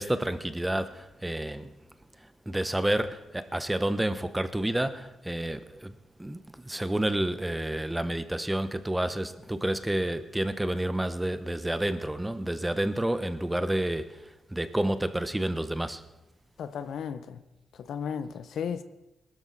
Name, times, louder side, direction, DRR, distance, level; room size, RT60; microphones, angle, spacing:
voice 1, 0.0-1.7 2.2-16.0, right 1 dB, 10° right, 1.0 m, -30 dB
voice 2, 16.6-17.4 17.8-18.8, left 7 dB, 75° left, 0.8 m, -34 dB
20.5 x 13.0 x 4.1 m
cardioid pair, 75°, 0 cm